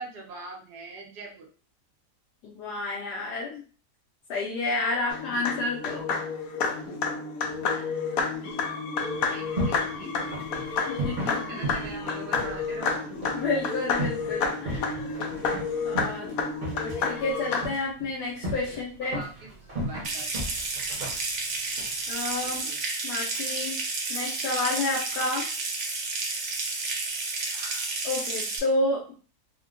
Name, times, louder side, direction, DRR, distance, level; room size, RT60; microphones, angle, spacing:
voice 1, 0.0-1.5 9.3-10.4 11.2-13.0 15.1-15.3 18.7-20.3 22.4-22.8, right 3 dB, 80° right, -1 dB, 1.5 m, -43 dB
voice 2, 2.4-3.6 4.3-6.1 7.6-8.0 10.9-11.6 13.3-15.1 15.8-16.3 16.7-19.2 22.1-22.6 23.0-23.8 24.1-25.5 27.5-29.0, left 2 dB, 85° left, -4 dB, 1.2 m, -30 dB
sound 1, 5.1-17.6, left 5 dB, 70° left, 1.0 m, -30 dB
sound 2, 9.1-22.6, right 1 dB, 35° right, 0.9 m, -37 dB
Water tap faucet / Sink (filling or washing) / Trickle dribble, 20.0-28.6, right 3 dB, 60° right, 0.8 m, -31 dB
3.6 x 2.2 x 2.4 m, 0.39 s
omnidirectional pair, 1.7 m